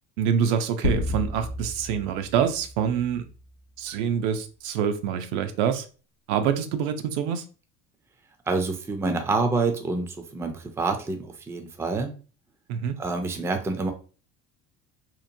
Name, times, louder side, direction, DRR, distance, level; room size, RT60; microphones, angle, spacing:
voice 1, 0.2-3.3 3.8-5.9 6.3-7.4 12.7-13.0, right 8 dB, 90° right, 0.5 m, -26 dB
sound 1, 0.8-3.4, left 2 dB, 70° left, 0.5 m, -31 dB
voice 2, 8.5-12.1 13.0-13.9, right 3 dB, 10° right, 0.3 m, -27 dB
2.9 x 2.1 x 2.5 m
cardioid pair, 120°, 33 cm